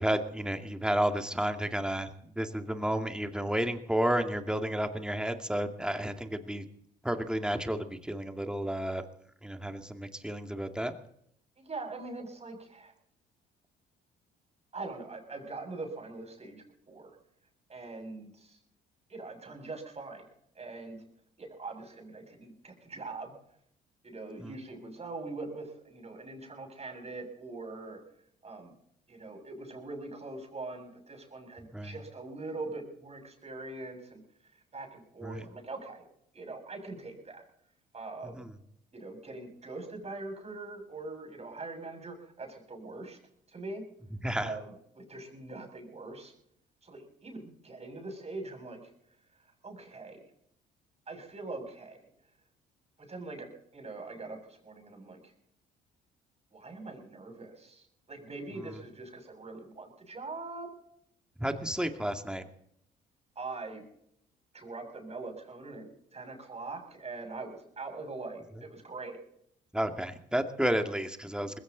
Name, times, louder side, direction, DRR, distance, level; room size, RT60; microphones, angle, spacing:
voice 1, 0.0-2.1 2.4-6.6 7.0-9.0 9.4-10.9 24.4-24.5 31.7-31.9 35.2-35.4 38.3-38.5 44.2-44.5 58.6-58.7 61.4-62.5 69.7-71.6, right 1 dB, 5° right, 6 dB, 2.3 m, -31 dB
voice 2, 11.6-12.9 14.7-17.2 17.7-18.6 19.1-20.3 20.5-21.0 21.4-23.3 24.0-28.0 28.4-28.7 29.1-34.2 34.5-36.0 36.3-37.5 37.9-38.5 38.9-43.2 43.5-43.8 44.3-46.3 46.8-48.9 49.4-50.2 51.1-52.0 53.0-55.3 56.5-60.7 63.4-63.8 64.5-69.2, right 3 dB, 35° right, 3 dB, 6.9 m, -42 dB
20.5 x 16.0 x 4.0 m, 0.70 s
supercardioid pair, 70°, 20 cm